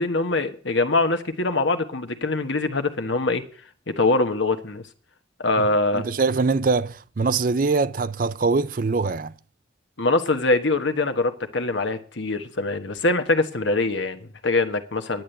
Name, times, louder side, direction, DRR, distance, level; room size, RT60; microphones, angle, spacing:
voice 1, 0.0-3.4 3.9-4.8 5.4-6.0 10.0-15.2, left 2 dB, 70° left, 1.3 m, -23 dB
voice 2, 5.9-9.3, right 4 dB, 45° right, 0.5 m, -23 dB
10.5 x 8.8 x 7.9 m
head